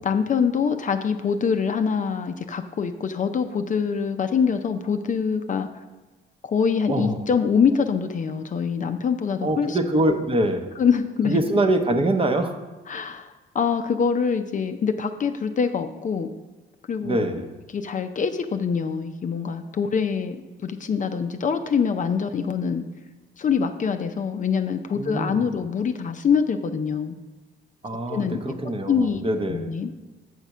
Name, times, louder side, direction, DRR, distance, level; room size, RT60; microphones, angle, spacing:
voice 1, 0.0-5.8 6.4-9.8 10.8-11.4 12.9-16.3 16.9-17.2 17.7-20.4 20.6-22.8 23.4-27.2 28.1-28.4 28.9-29.2 29.5-29.9, left 6 dB, 40° left, 8 dB, 0.5 m, -24 dB
voice 2, 6.9-7.2 9.4-10.6 11.2-12.6 17.0-17.5 25.0-25.4 27.8-29.7, right 1 dB, 30° right, 6 dB, 0.8 m, -24 dB
8.0 x 4.2 x 6.0 m, 1.2 s
cardioid pair, 90°, 20 cm